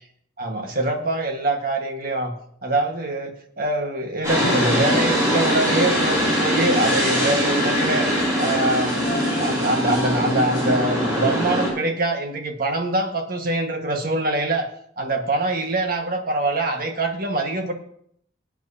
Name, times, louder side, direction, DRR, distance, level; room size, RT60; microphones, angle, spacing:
voice 1, 0.4-2.3 2.6-8.1 8.4-9.1 9.4-14.7 15.0-17.7, right 2 dB, 50° right, 4 dB, 1.5 m, -24 dB
sound 1, 4.2-11.7, equal, 15° right, 5.9 m, -22 dB
19.5 x 9.1 x 2.8 m, 0.67 s
head